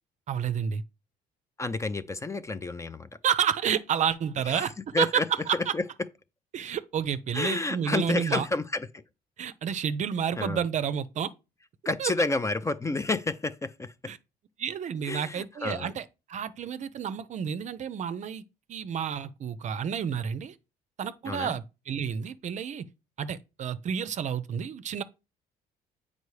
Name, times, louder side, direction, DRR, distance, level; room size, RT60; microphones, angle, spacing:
voice 1, 0.3-0.8 3.2-5.7 6.5-8.5 9.4-11.3 12.0-12.1 14.1-14.2 14.6-18.4 18.7-20.5 21.0-22.8 23.2-25.0, right 8 dB, 45° right, 0.5 m, -30 dB
voice 2, 1.6-3.1 4.5-4.6 4.9-5.3 5.7-5.8 7.3-8.9 10.4-10.6 11.9-14.1 15.1-15.9 21.3-21.6, left 3 dB, 15° left, 0.5 m, -30 dB
8.1 x 5.2 x 3.2 m
cardioid pair, 110°, 17 cm